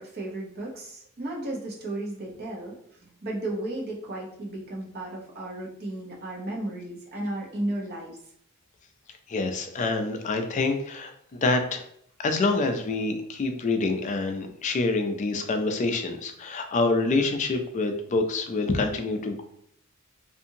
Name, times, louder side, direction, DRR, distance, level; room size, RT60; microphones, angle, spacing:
voice 1, 0.0-8.2, right 1 dB, 45° right, -3 dB, 0.8 m, -34 dB
voice 2, 9.3-11.8 12.2-19.4, left 3 dB, 35° left, 5 dB, 0.4 m, -26 dB
2.7 x 2.5 x 2.7 m, 0.69 s
head